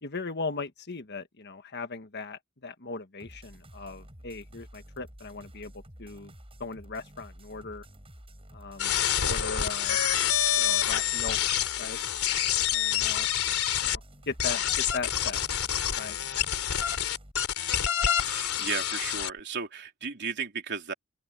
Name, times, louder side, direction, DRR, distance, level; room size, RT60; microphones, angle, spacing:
voice 1, 0.0-6.3 6.6-7.8 8.5-8.9 9.2-10.0 10.5-11.4 11.8-12.0 12.7-13.3 13.8-15.4 16.0-16.2, left 4 dB, 50° left, 1.5 m, -38 dB
sound 1, 3.2-17.3, equal, 25° right, 6.4 m, -50 dB
sound 2, 8.8-14.0 14.4-19.3, left 10 dB, 90° left, 3.2 m, -27 dB
voice 2, 18.2-20.9, right 5 dB, 55° right, 3.5 m, -35 dB
open air
head